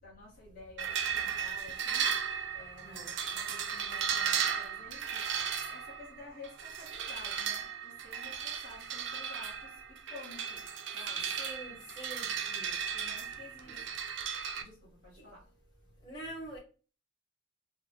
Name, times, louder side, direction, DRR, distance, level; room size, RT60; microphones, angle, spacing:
voice 1, 0.0-2.2 2.5-11.4 12.9-13.9 14.6-15.5, left 3 dB, 45° left, 1.3 m, -52 dB
sound 1, 0.8-14.6, right 7 dB, 75° right, 0.4 m, -35 dB
voice 2, 2.8-3.2 11.4-12.8 13.7-13.8 16.0-16.6, right 1 dB, 20° left, 1.1 m, -45 dB
3.5 x 2.2 x 3.2 m
head